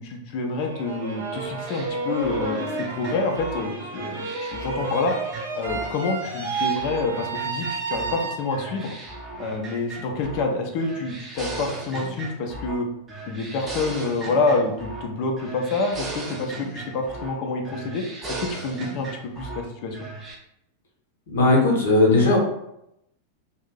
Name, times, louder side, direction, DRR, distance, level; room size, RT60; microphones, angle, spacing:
voice 1, 0.0-5.2 5.5-8.9 9.4-12.9 13.3-20.0, left 3 dB, 45° left, 3 dB, 0.5 m, -27 dB
sound 1, 0.6-8.8, right 3 dB, 65° right, 0.6 m, -31 dB
sound 2, 1.7-5.9 6.2-8.2 8.5-10.5 10.8-12.8 13.1-15.1 15.4-17.4 17.6-19.6 19.9-20.3, right 2 dB, 15° right, 0.7 m, -37 dB
voice 2, 21.3-22.4, left 2 dB, 60° left, -1 dB, 0.9 m, -17 dB
2.5 x 2.0 x 3.7 m, 0.81 s
figure-of-eight pair, 90°, 0 cm